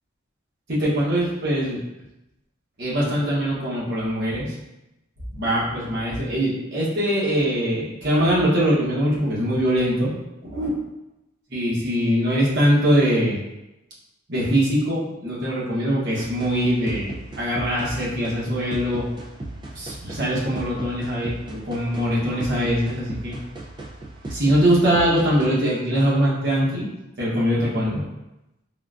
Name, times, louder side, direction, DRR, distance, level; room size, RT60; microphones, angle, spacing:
voice 1, 0.7-1.8 2.8-4.5 5.3-10.1 10.5-10.8 11.5-13.4 14.3-19.1 19.7-23.4 24.3-26.9 27.2-28.1, equal, 55° right, -6 dB, 0.9 m, -22 dB
sound 1, 16.2-25.5, right 2 dB, 20° right, 0.3 m, -37 dB
3.6 x 2.2 x 2.4 m, 0.93 s
head